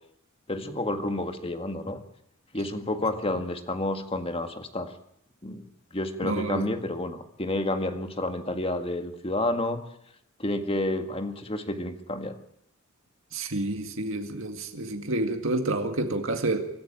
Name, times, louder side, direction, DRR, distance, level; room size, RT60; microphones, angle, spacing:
voice 1, 0.5-2.0 2.5-4.9 5.4-5.6 5.9-9.8 10.4-12.4, left 1 dB, 25° left, 7 dB, 1.8 m, -30 dB
voice 2, 6.2-6.6 13.3-16.6, right 2 dB, 65° right, 5 dB, 2.2 m, -29 dB
25.5 x 14.5 x 8.9 m, 0.75 s
head